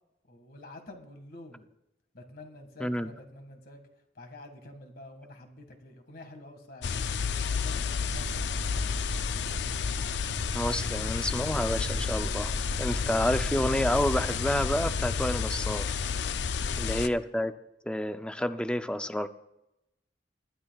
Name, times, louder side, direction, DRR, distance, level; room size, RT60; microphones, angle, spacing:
voice 1, 0.3-1.7 2.1-3.8 4.2-7.0 7.4-9.5 16.4-17.2, left 1 dB, 60° left, 5 dB, 1.9 m, -48 dB
voice 2, 2.8-3.1 10.5-15.9 16.8-17.5 17.8-19.3, left 1 dB, 5° left, 10 dB, 0.5 m, -29 dB
sound 1, 6.8-17.1, left 6 dB, 80° left, 0.5 m, -31 dB
sound 2, 8.1-15.0, equal, 80° right, 2.3 m, -38 dB
20.0 x 12.0 x 2.4 m, 0.88 s
head